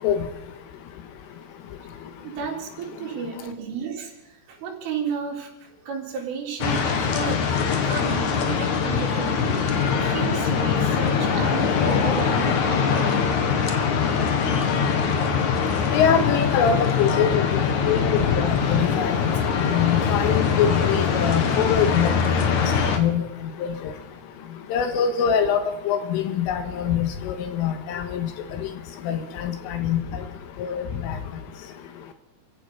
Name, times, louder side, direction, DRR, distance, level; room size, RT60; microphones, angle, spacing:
voice 1, 2.2-13.1, right 6 dB, 70° right, 0 dB, 6.4 m, -33 dB
sound 1, 6.6-23.0, left 6 dB, 55° left, 2.2 m, -22 dB
voice 2, 15.9-17.5 17.9-19.1 19.7-22.1 23.0-23.2 23.6-23.7 24.7-25.6 25.9-28.3 29.1-30.0 30.6-31.2, left 8 dB, 80° left, 8 dB, 3.8 m, -23 dB
27.5 x 16.0 x 7.1 m, 0.94 s
omnidirectional pair, 5.9 m